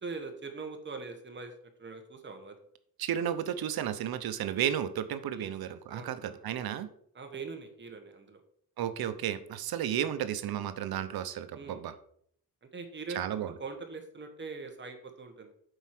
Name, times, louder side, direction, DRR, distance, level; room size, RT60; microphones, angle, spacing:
voice 1, 0.0-1.5 1.8-2.6 5.4-5.5 5.9-6.4 7.1-8.4 11.5-11.8 12.6-13.2 13.6-15.5, right 4 dB, 30° right, 5 dB, 1.3 m, -42 dB
voice 2, 3.0-6.9 8.8-11.9 13.1-13.5, right 10 dB, 85° right, 12 dB, 0.8 m, -33 dB
8.0 x 4.6 x 5.9 m, 0.66 s
wide cardioid pair, 160°, 36 cm